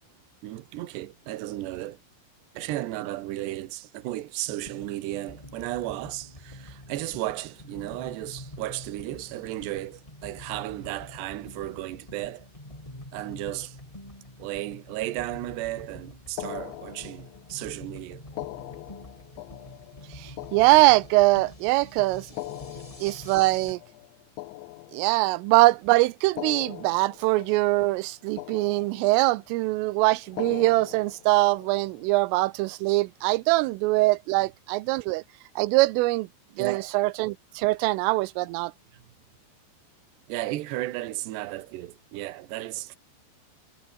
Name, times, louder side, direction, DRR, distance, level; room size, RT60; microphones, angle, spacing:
voice 1, 0.4-2.0 2.5-12.5 13.1-13.8 14.4-18.2 36.6-36.9 38.9-39.0 40.3-43.0, right 16 dB, 70° right, 3.3 m, -34 dB
sound 1, 4.5-23.7, left 1 dB, 5° left, 4.4 m, -46 dB
sound 2, 16.4-17.6 18.3-21.6 22.2-25.5 26.2-28.1 28.4-29.4 30.2-32.1, left 19 dB, 80° left, 2.9 m, -42 dB
voice 2, 20.1-22.3 23.0-23.8 24.9-35.2 35.6-36.3 36.6-38.7, right 21 dB, 90° right, 3.3 m, -23 dB
omnidirectional pair, 5.7 m